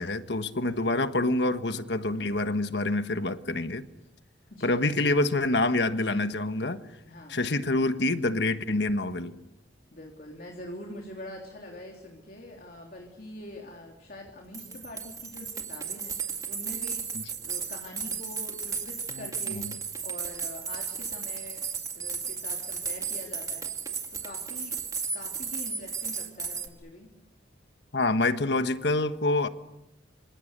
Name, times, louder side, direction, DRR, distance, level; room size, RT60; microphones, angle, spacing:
voice 1, 0.0-3.8 4.6-6.8 7.3-9.4 17.1-17.2 19.1-19.7 27.9-29.5, left 2 dB, 65° left, 10 dB, 1.5 m, -27 dB
voice 2, 7.0-7.4 9.9-17.1 17.3-21.7 21.9-23.7 24.1-24.8 25.1-27.1, left 1 dB, 50° left, 1 dB, 3.4 m, -44 dB
sound 1, 14.3-14.4 14.5-26.7, right 6 dB, 20° right, 2.1 m, -34 dB
27.0 x 26.5 x 6.8 m, 0.92 s
head